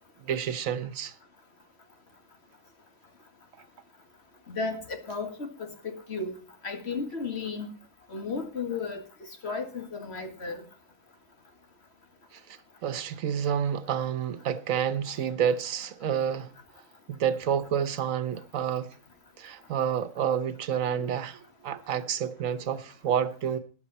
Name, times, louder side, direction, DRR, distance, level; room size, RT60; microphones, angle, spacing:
voice 1, 0.2-1.1 12.3-16.5 17.1-18.9 19.4-23.6, right 8 dB, 90° right, 1.3 m, -29 dB
voice 2, 4.5-6.3 6.6-7.8 8.1-10.6 15.1-15.2, left 4 dB, 55° left, 2.2 m, -34 dB
13.5 x 10.5 x 4.2 m
omnidirectional pair, 1.3 m